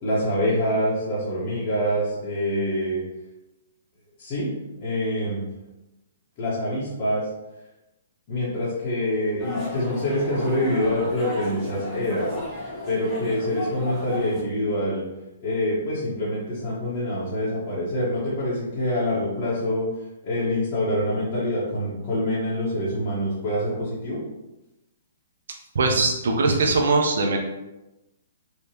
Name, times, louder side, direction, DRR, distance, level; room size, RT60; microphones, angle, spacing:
voice 1, 0.0-3.1 4.2-4.5 4.8-5.4 6.4-7.3 8.3-12.3 12.9-15.1 15.4-19.9 20.2-24.2, left 1 dB, 40° left, -10 dB, 1.4 m, -25 dB
sound 1, 9.4-14.4, left 1 dB, 10° left, 1.2 m, -34 dB
voice 2, 25.7-27.4, right 3 dB, 70° right, 2 dB, 0.8 m, -21 dB
3.3 x 3.2 x 2.9 m, 0.98 s
hypercardioid pair, 135°, 0 cm